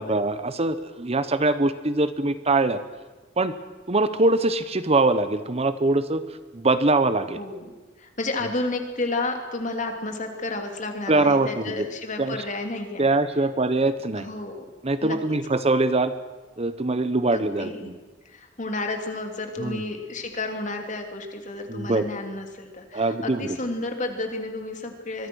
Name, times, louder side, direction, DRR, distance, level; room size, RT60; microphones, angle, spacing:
voice 1, 0.0-2.8 3.4-3.5 3.9-6.2 6.5-7.4 11.1-11.8 12.2-12.4 13.0-14.3 14.8-16.1 16.6-17.9 19.6-19.8 21.7-22.0 22.9-23.6, right 2 dB, 35° right, 12 dB, 1.0 m, -23 dB
voice 2, 7.3-7.7 8.0-13.1 14.2-14.6 15.0-15.4 17.3-17.9 18.2-25.3, left 2 dB, 40° left, 5 dB, 3.1 m, -31 dB
25.0 x 22.5 x 6.4 m, 1.2 s
head